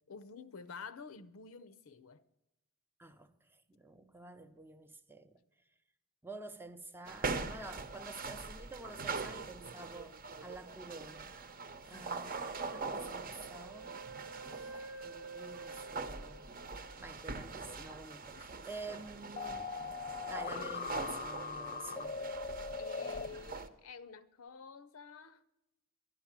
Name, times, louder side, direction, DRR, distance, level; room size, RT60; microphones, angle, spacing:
voice 1, 0.1-2.2 11.9-12.3 18.4-18.6 18.9-19.2 22.8-25.4, left 5 dB, 70° left, 0.7 m, -50 dB
voice 2, 3.0-5.4 6.2-11.3 11.9-14.0 14.5-16.5 17.0-19.7 20.3-22.2, right 2 dB, 10° right, 0.6 m, -49 dB
sound 1, 7.1-23.7, right 4 dB, 40° right, 0.8 m, -43 dB
Wind instrument woodwind instrument, 13.0-17.2, right 4 dB, 80° right, 1.0 m, -49 dB
sound 2, 19.4-23.3, left 5 dB, 35° left, 0.4 m, -40 dB
11.5 x 11.5 x 7.3 m
head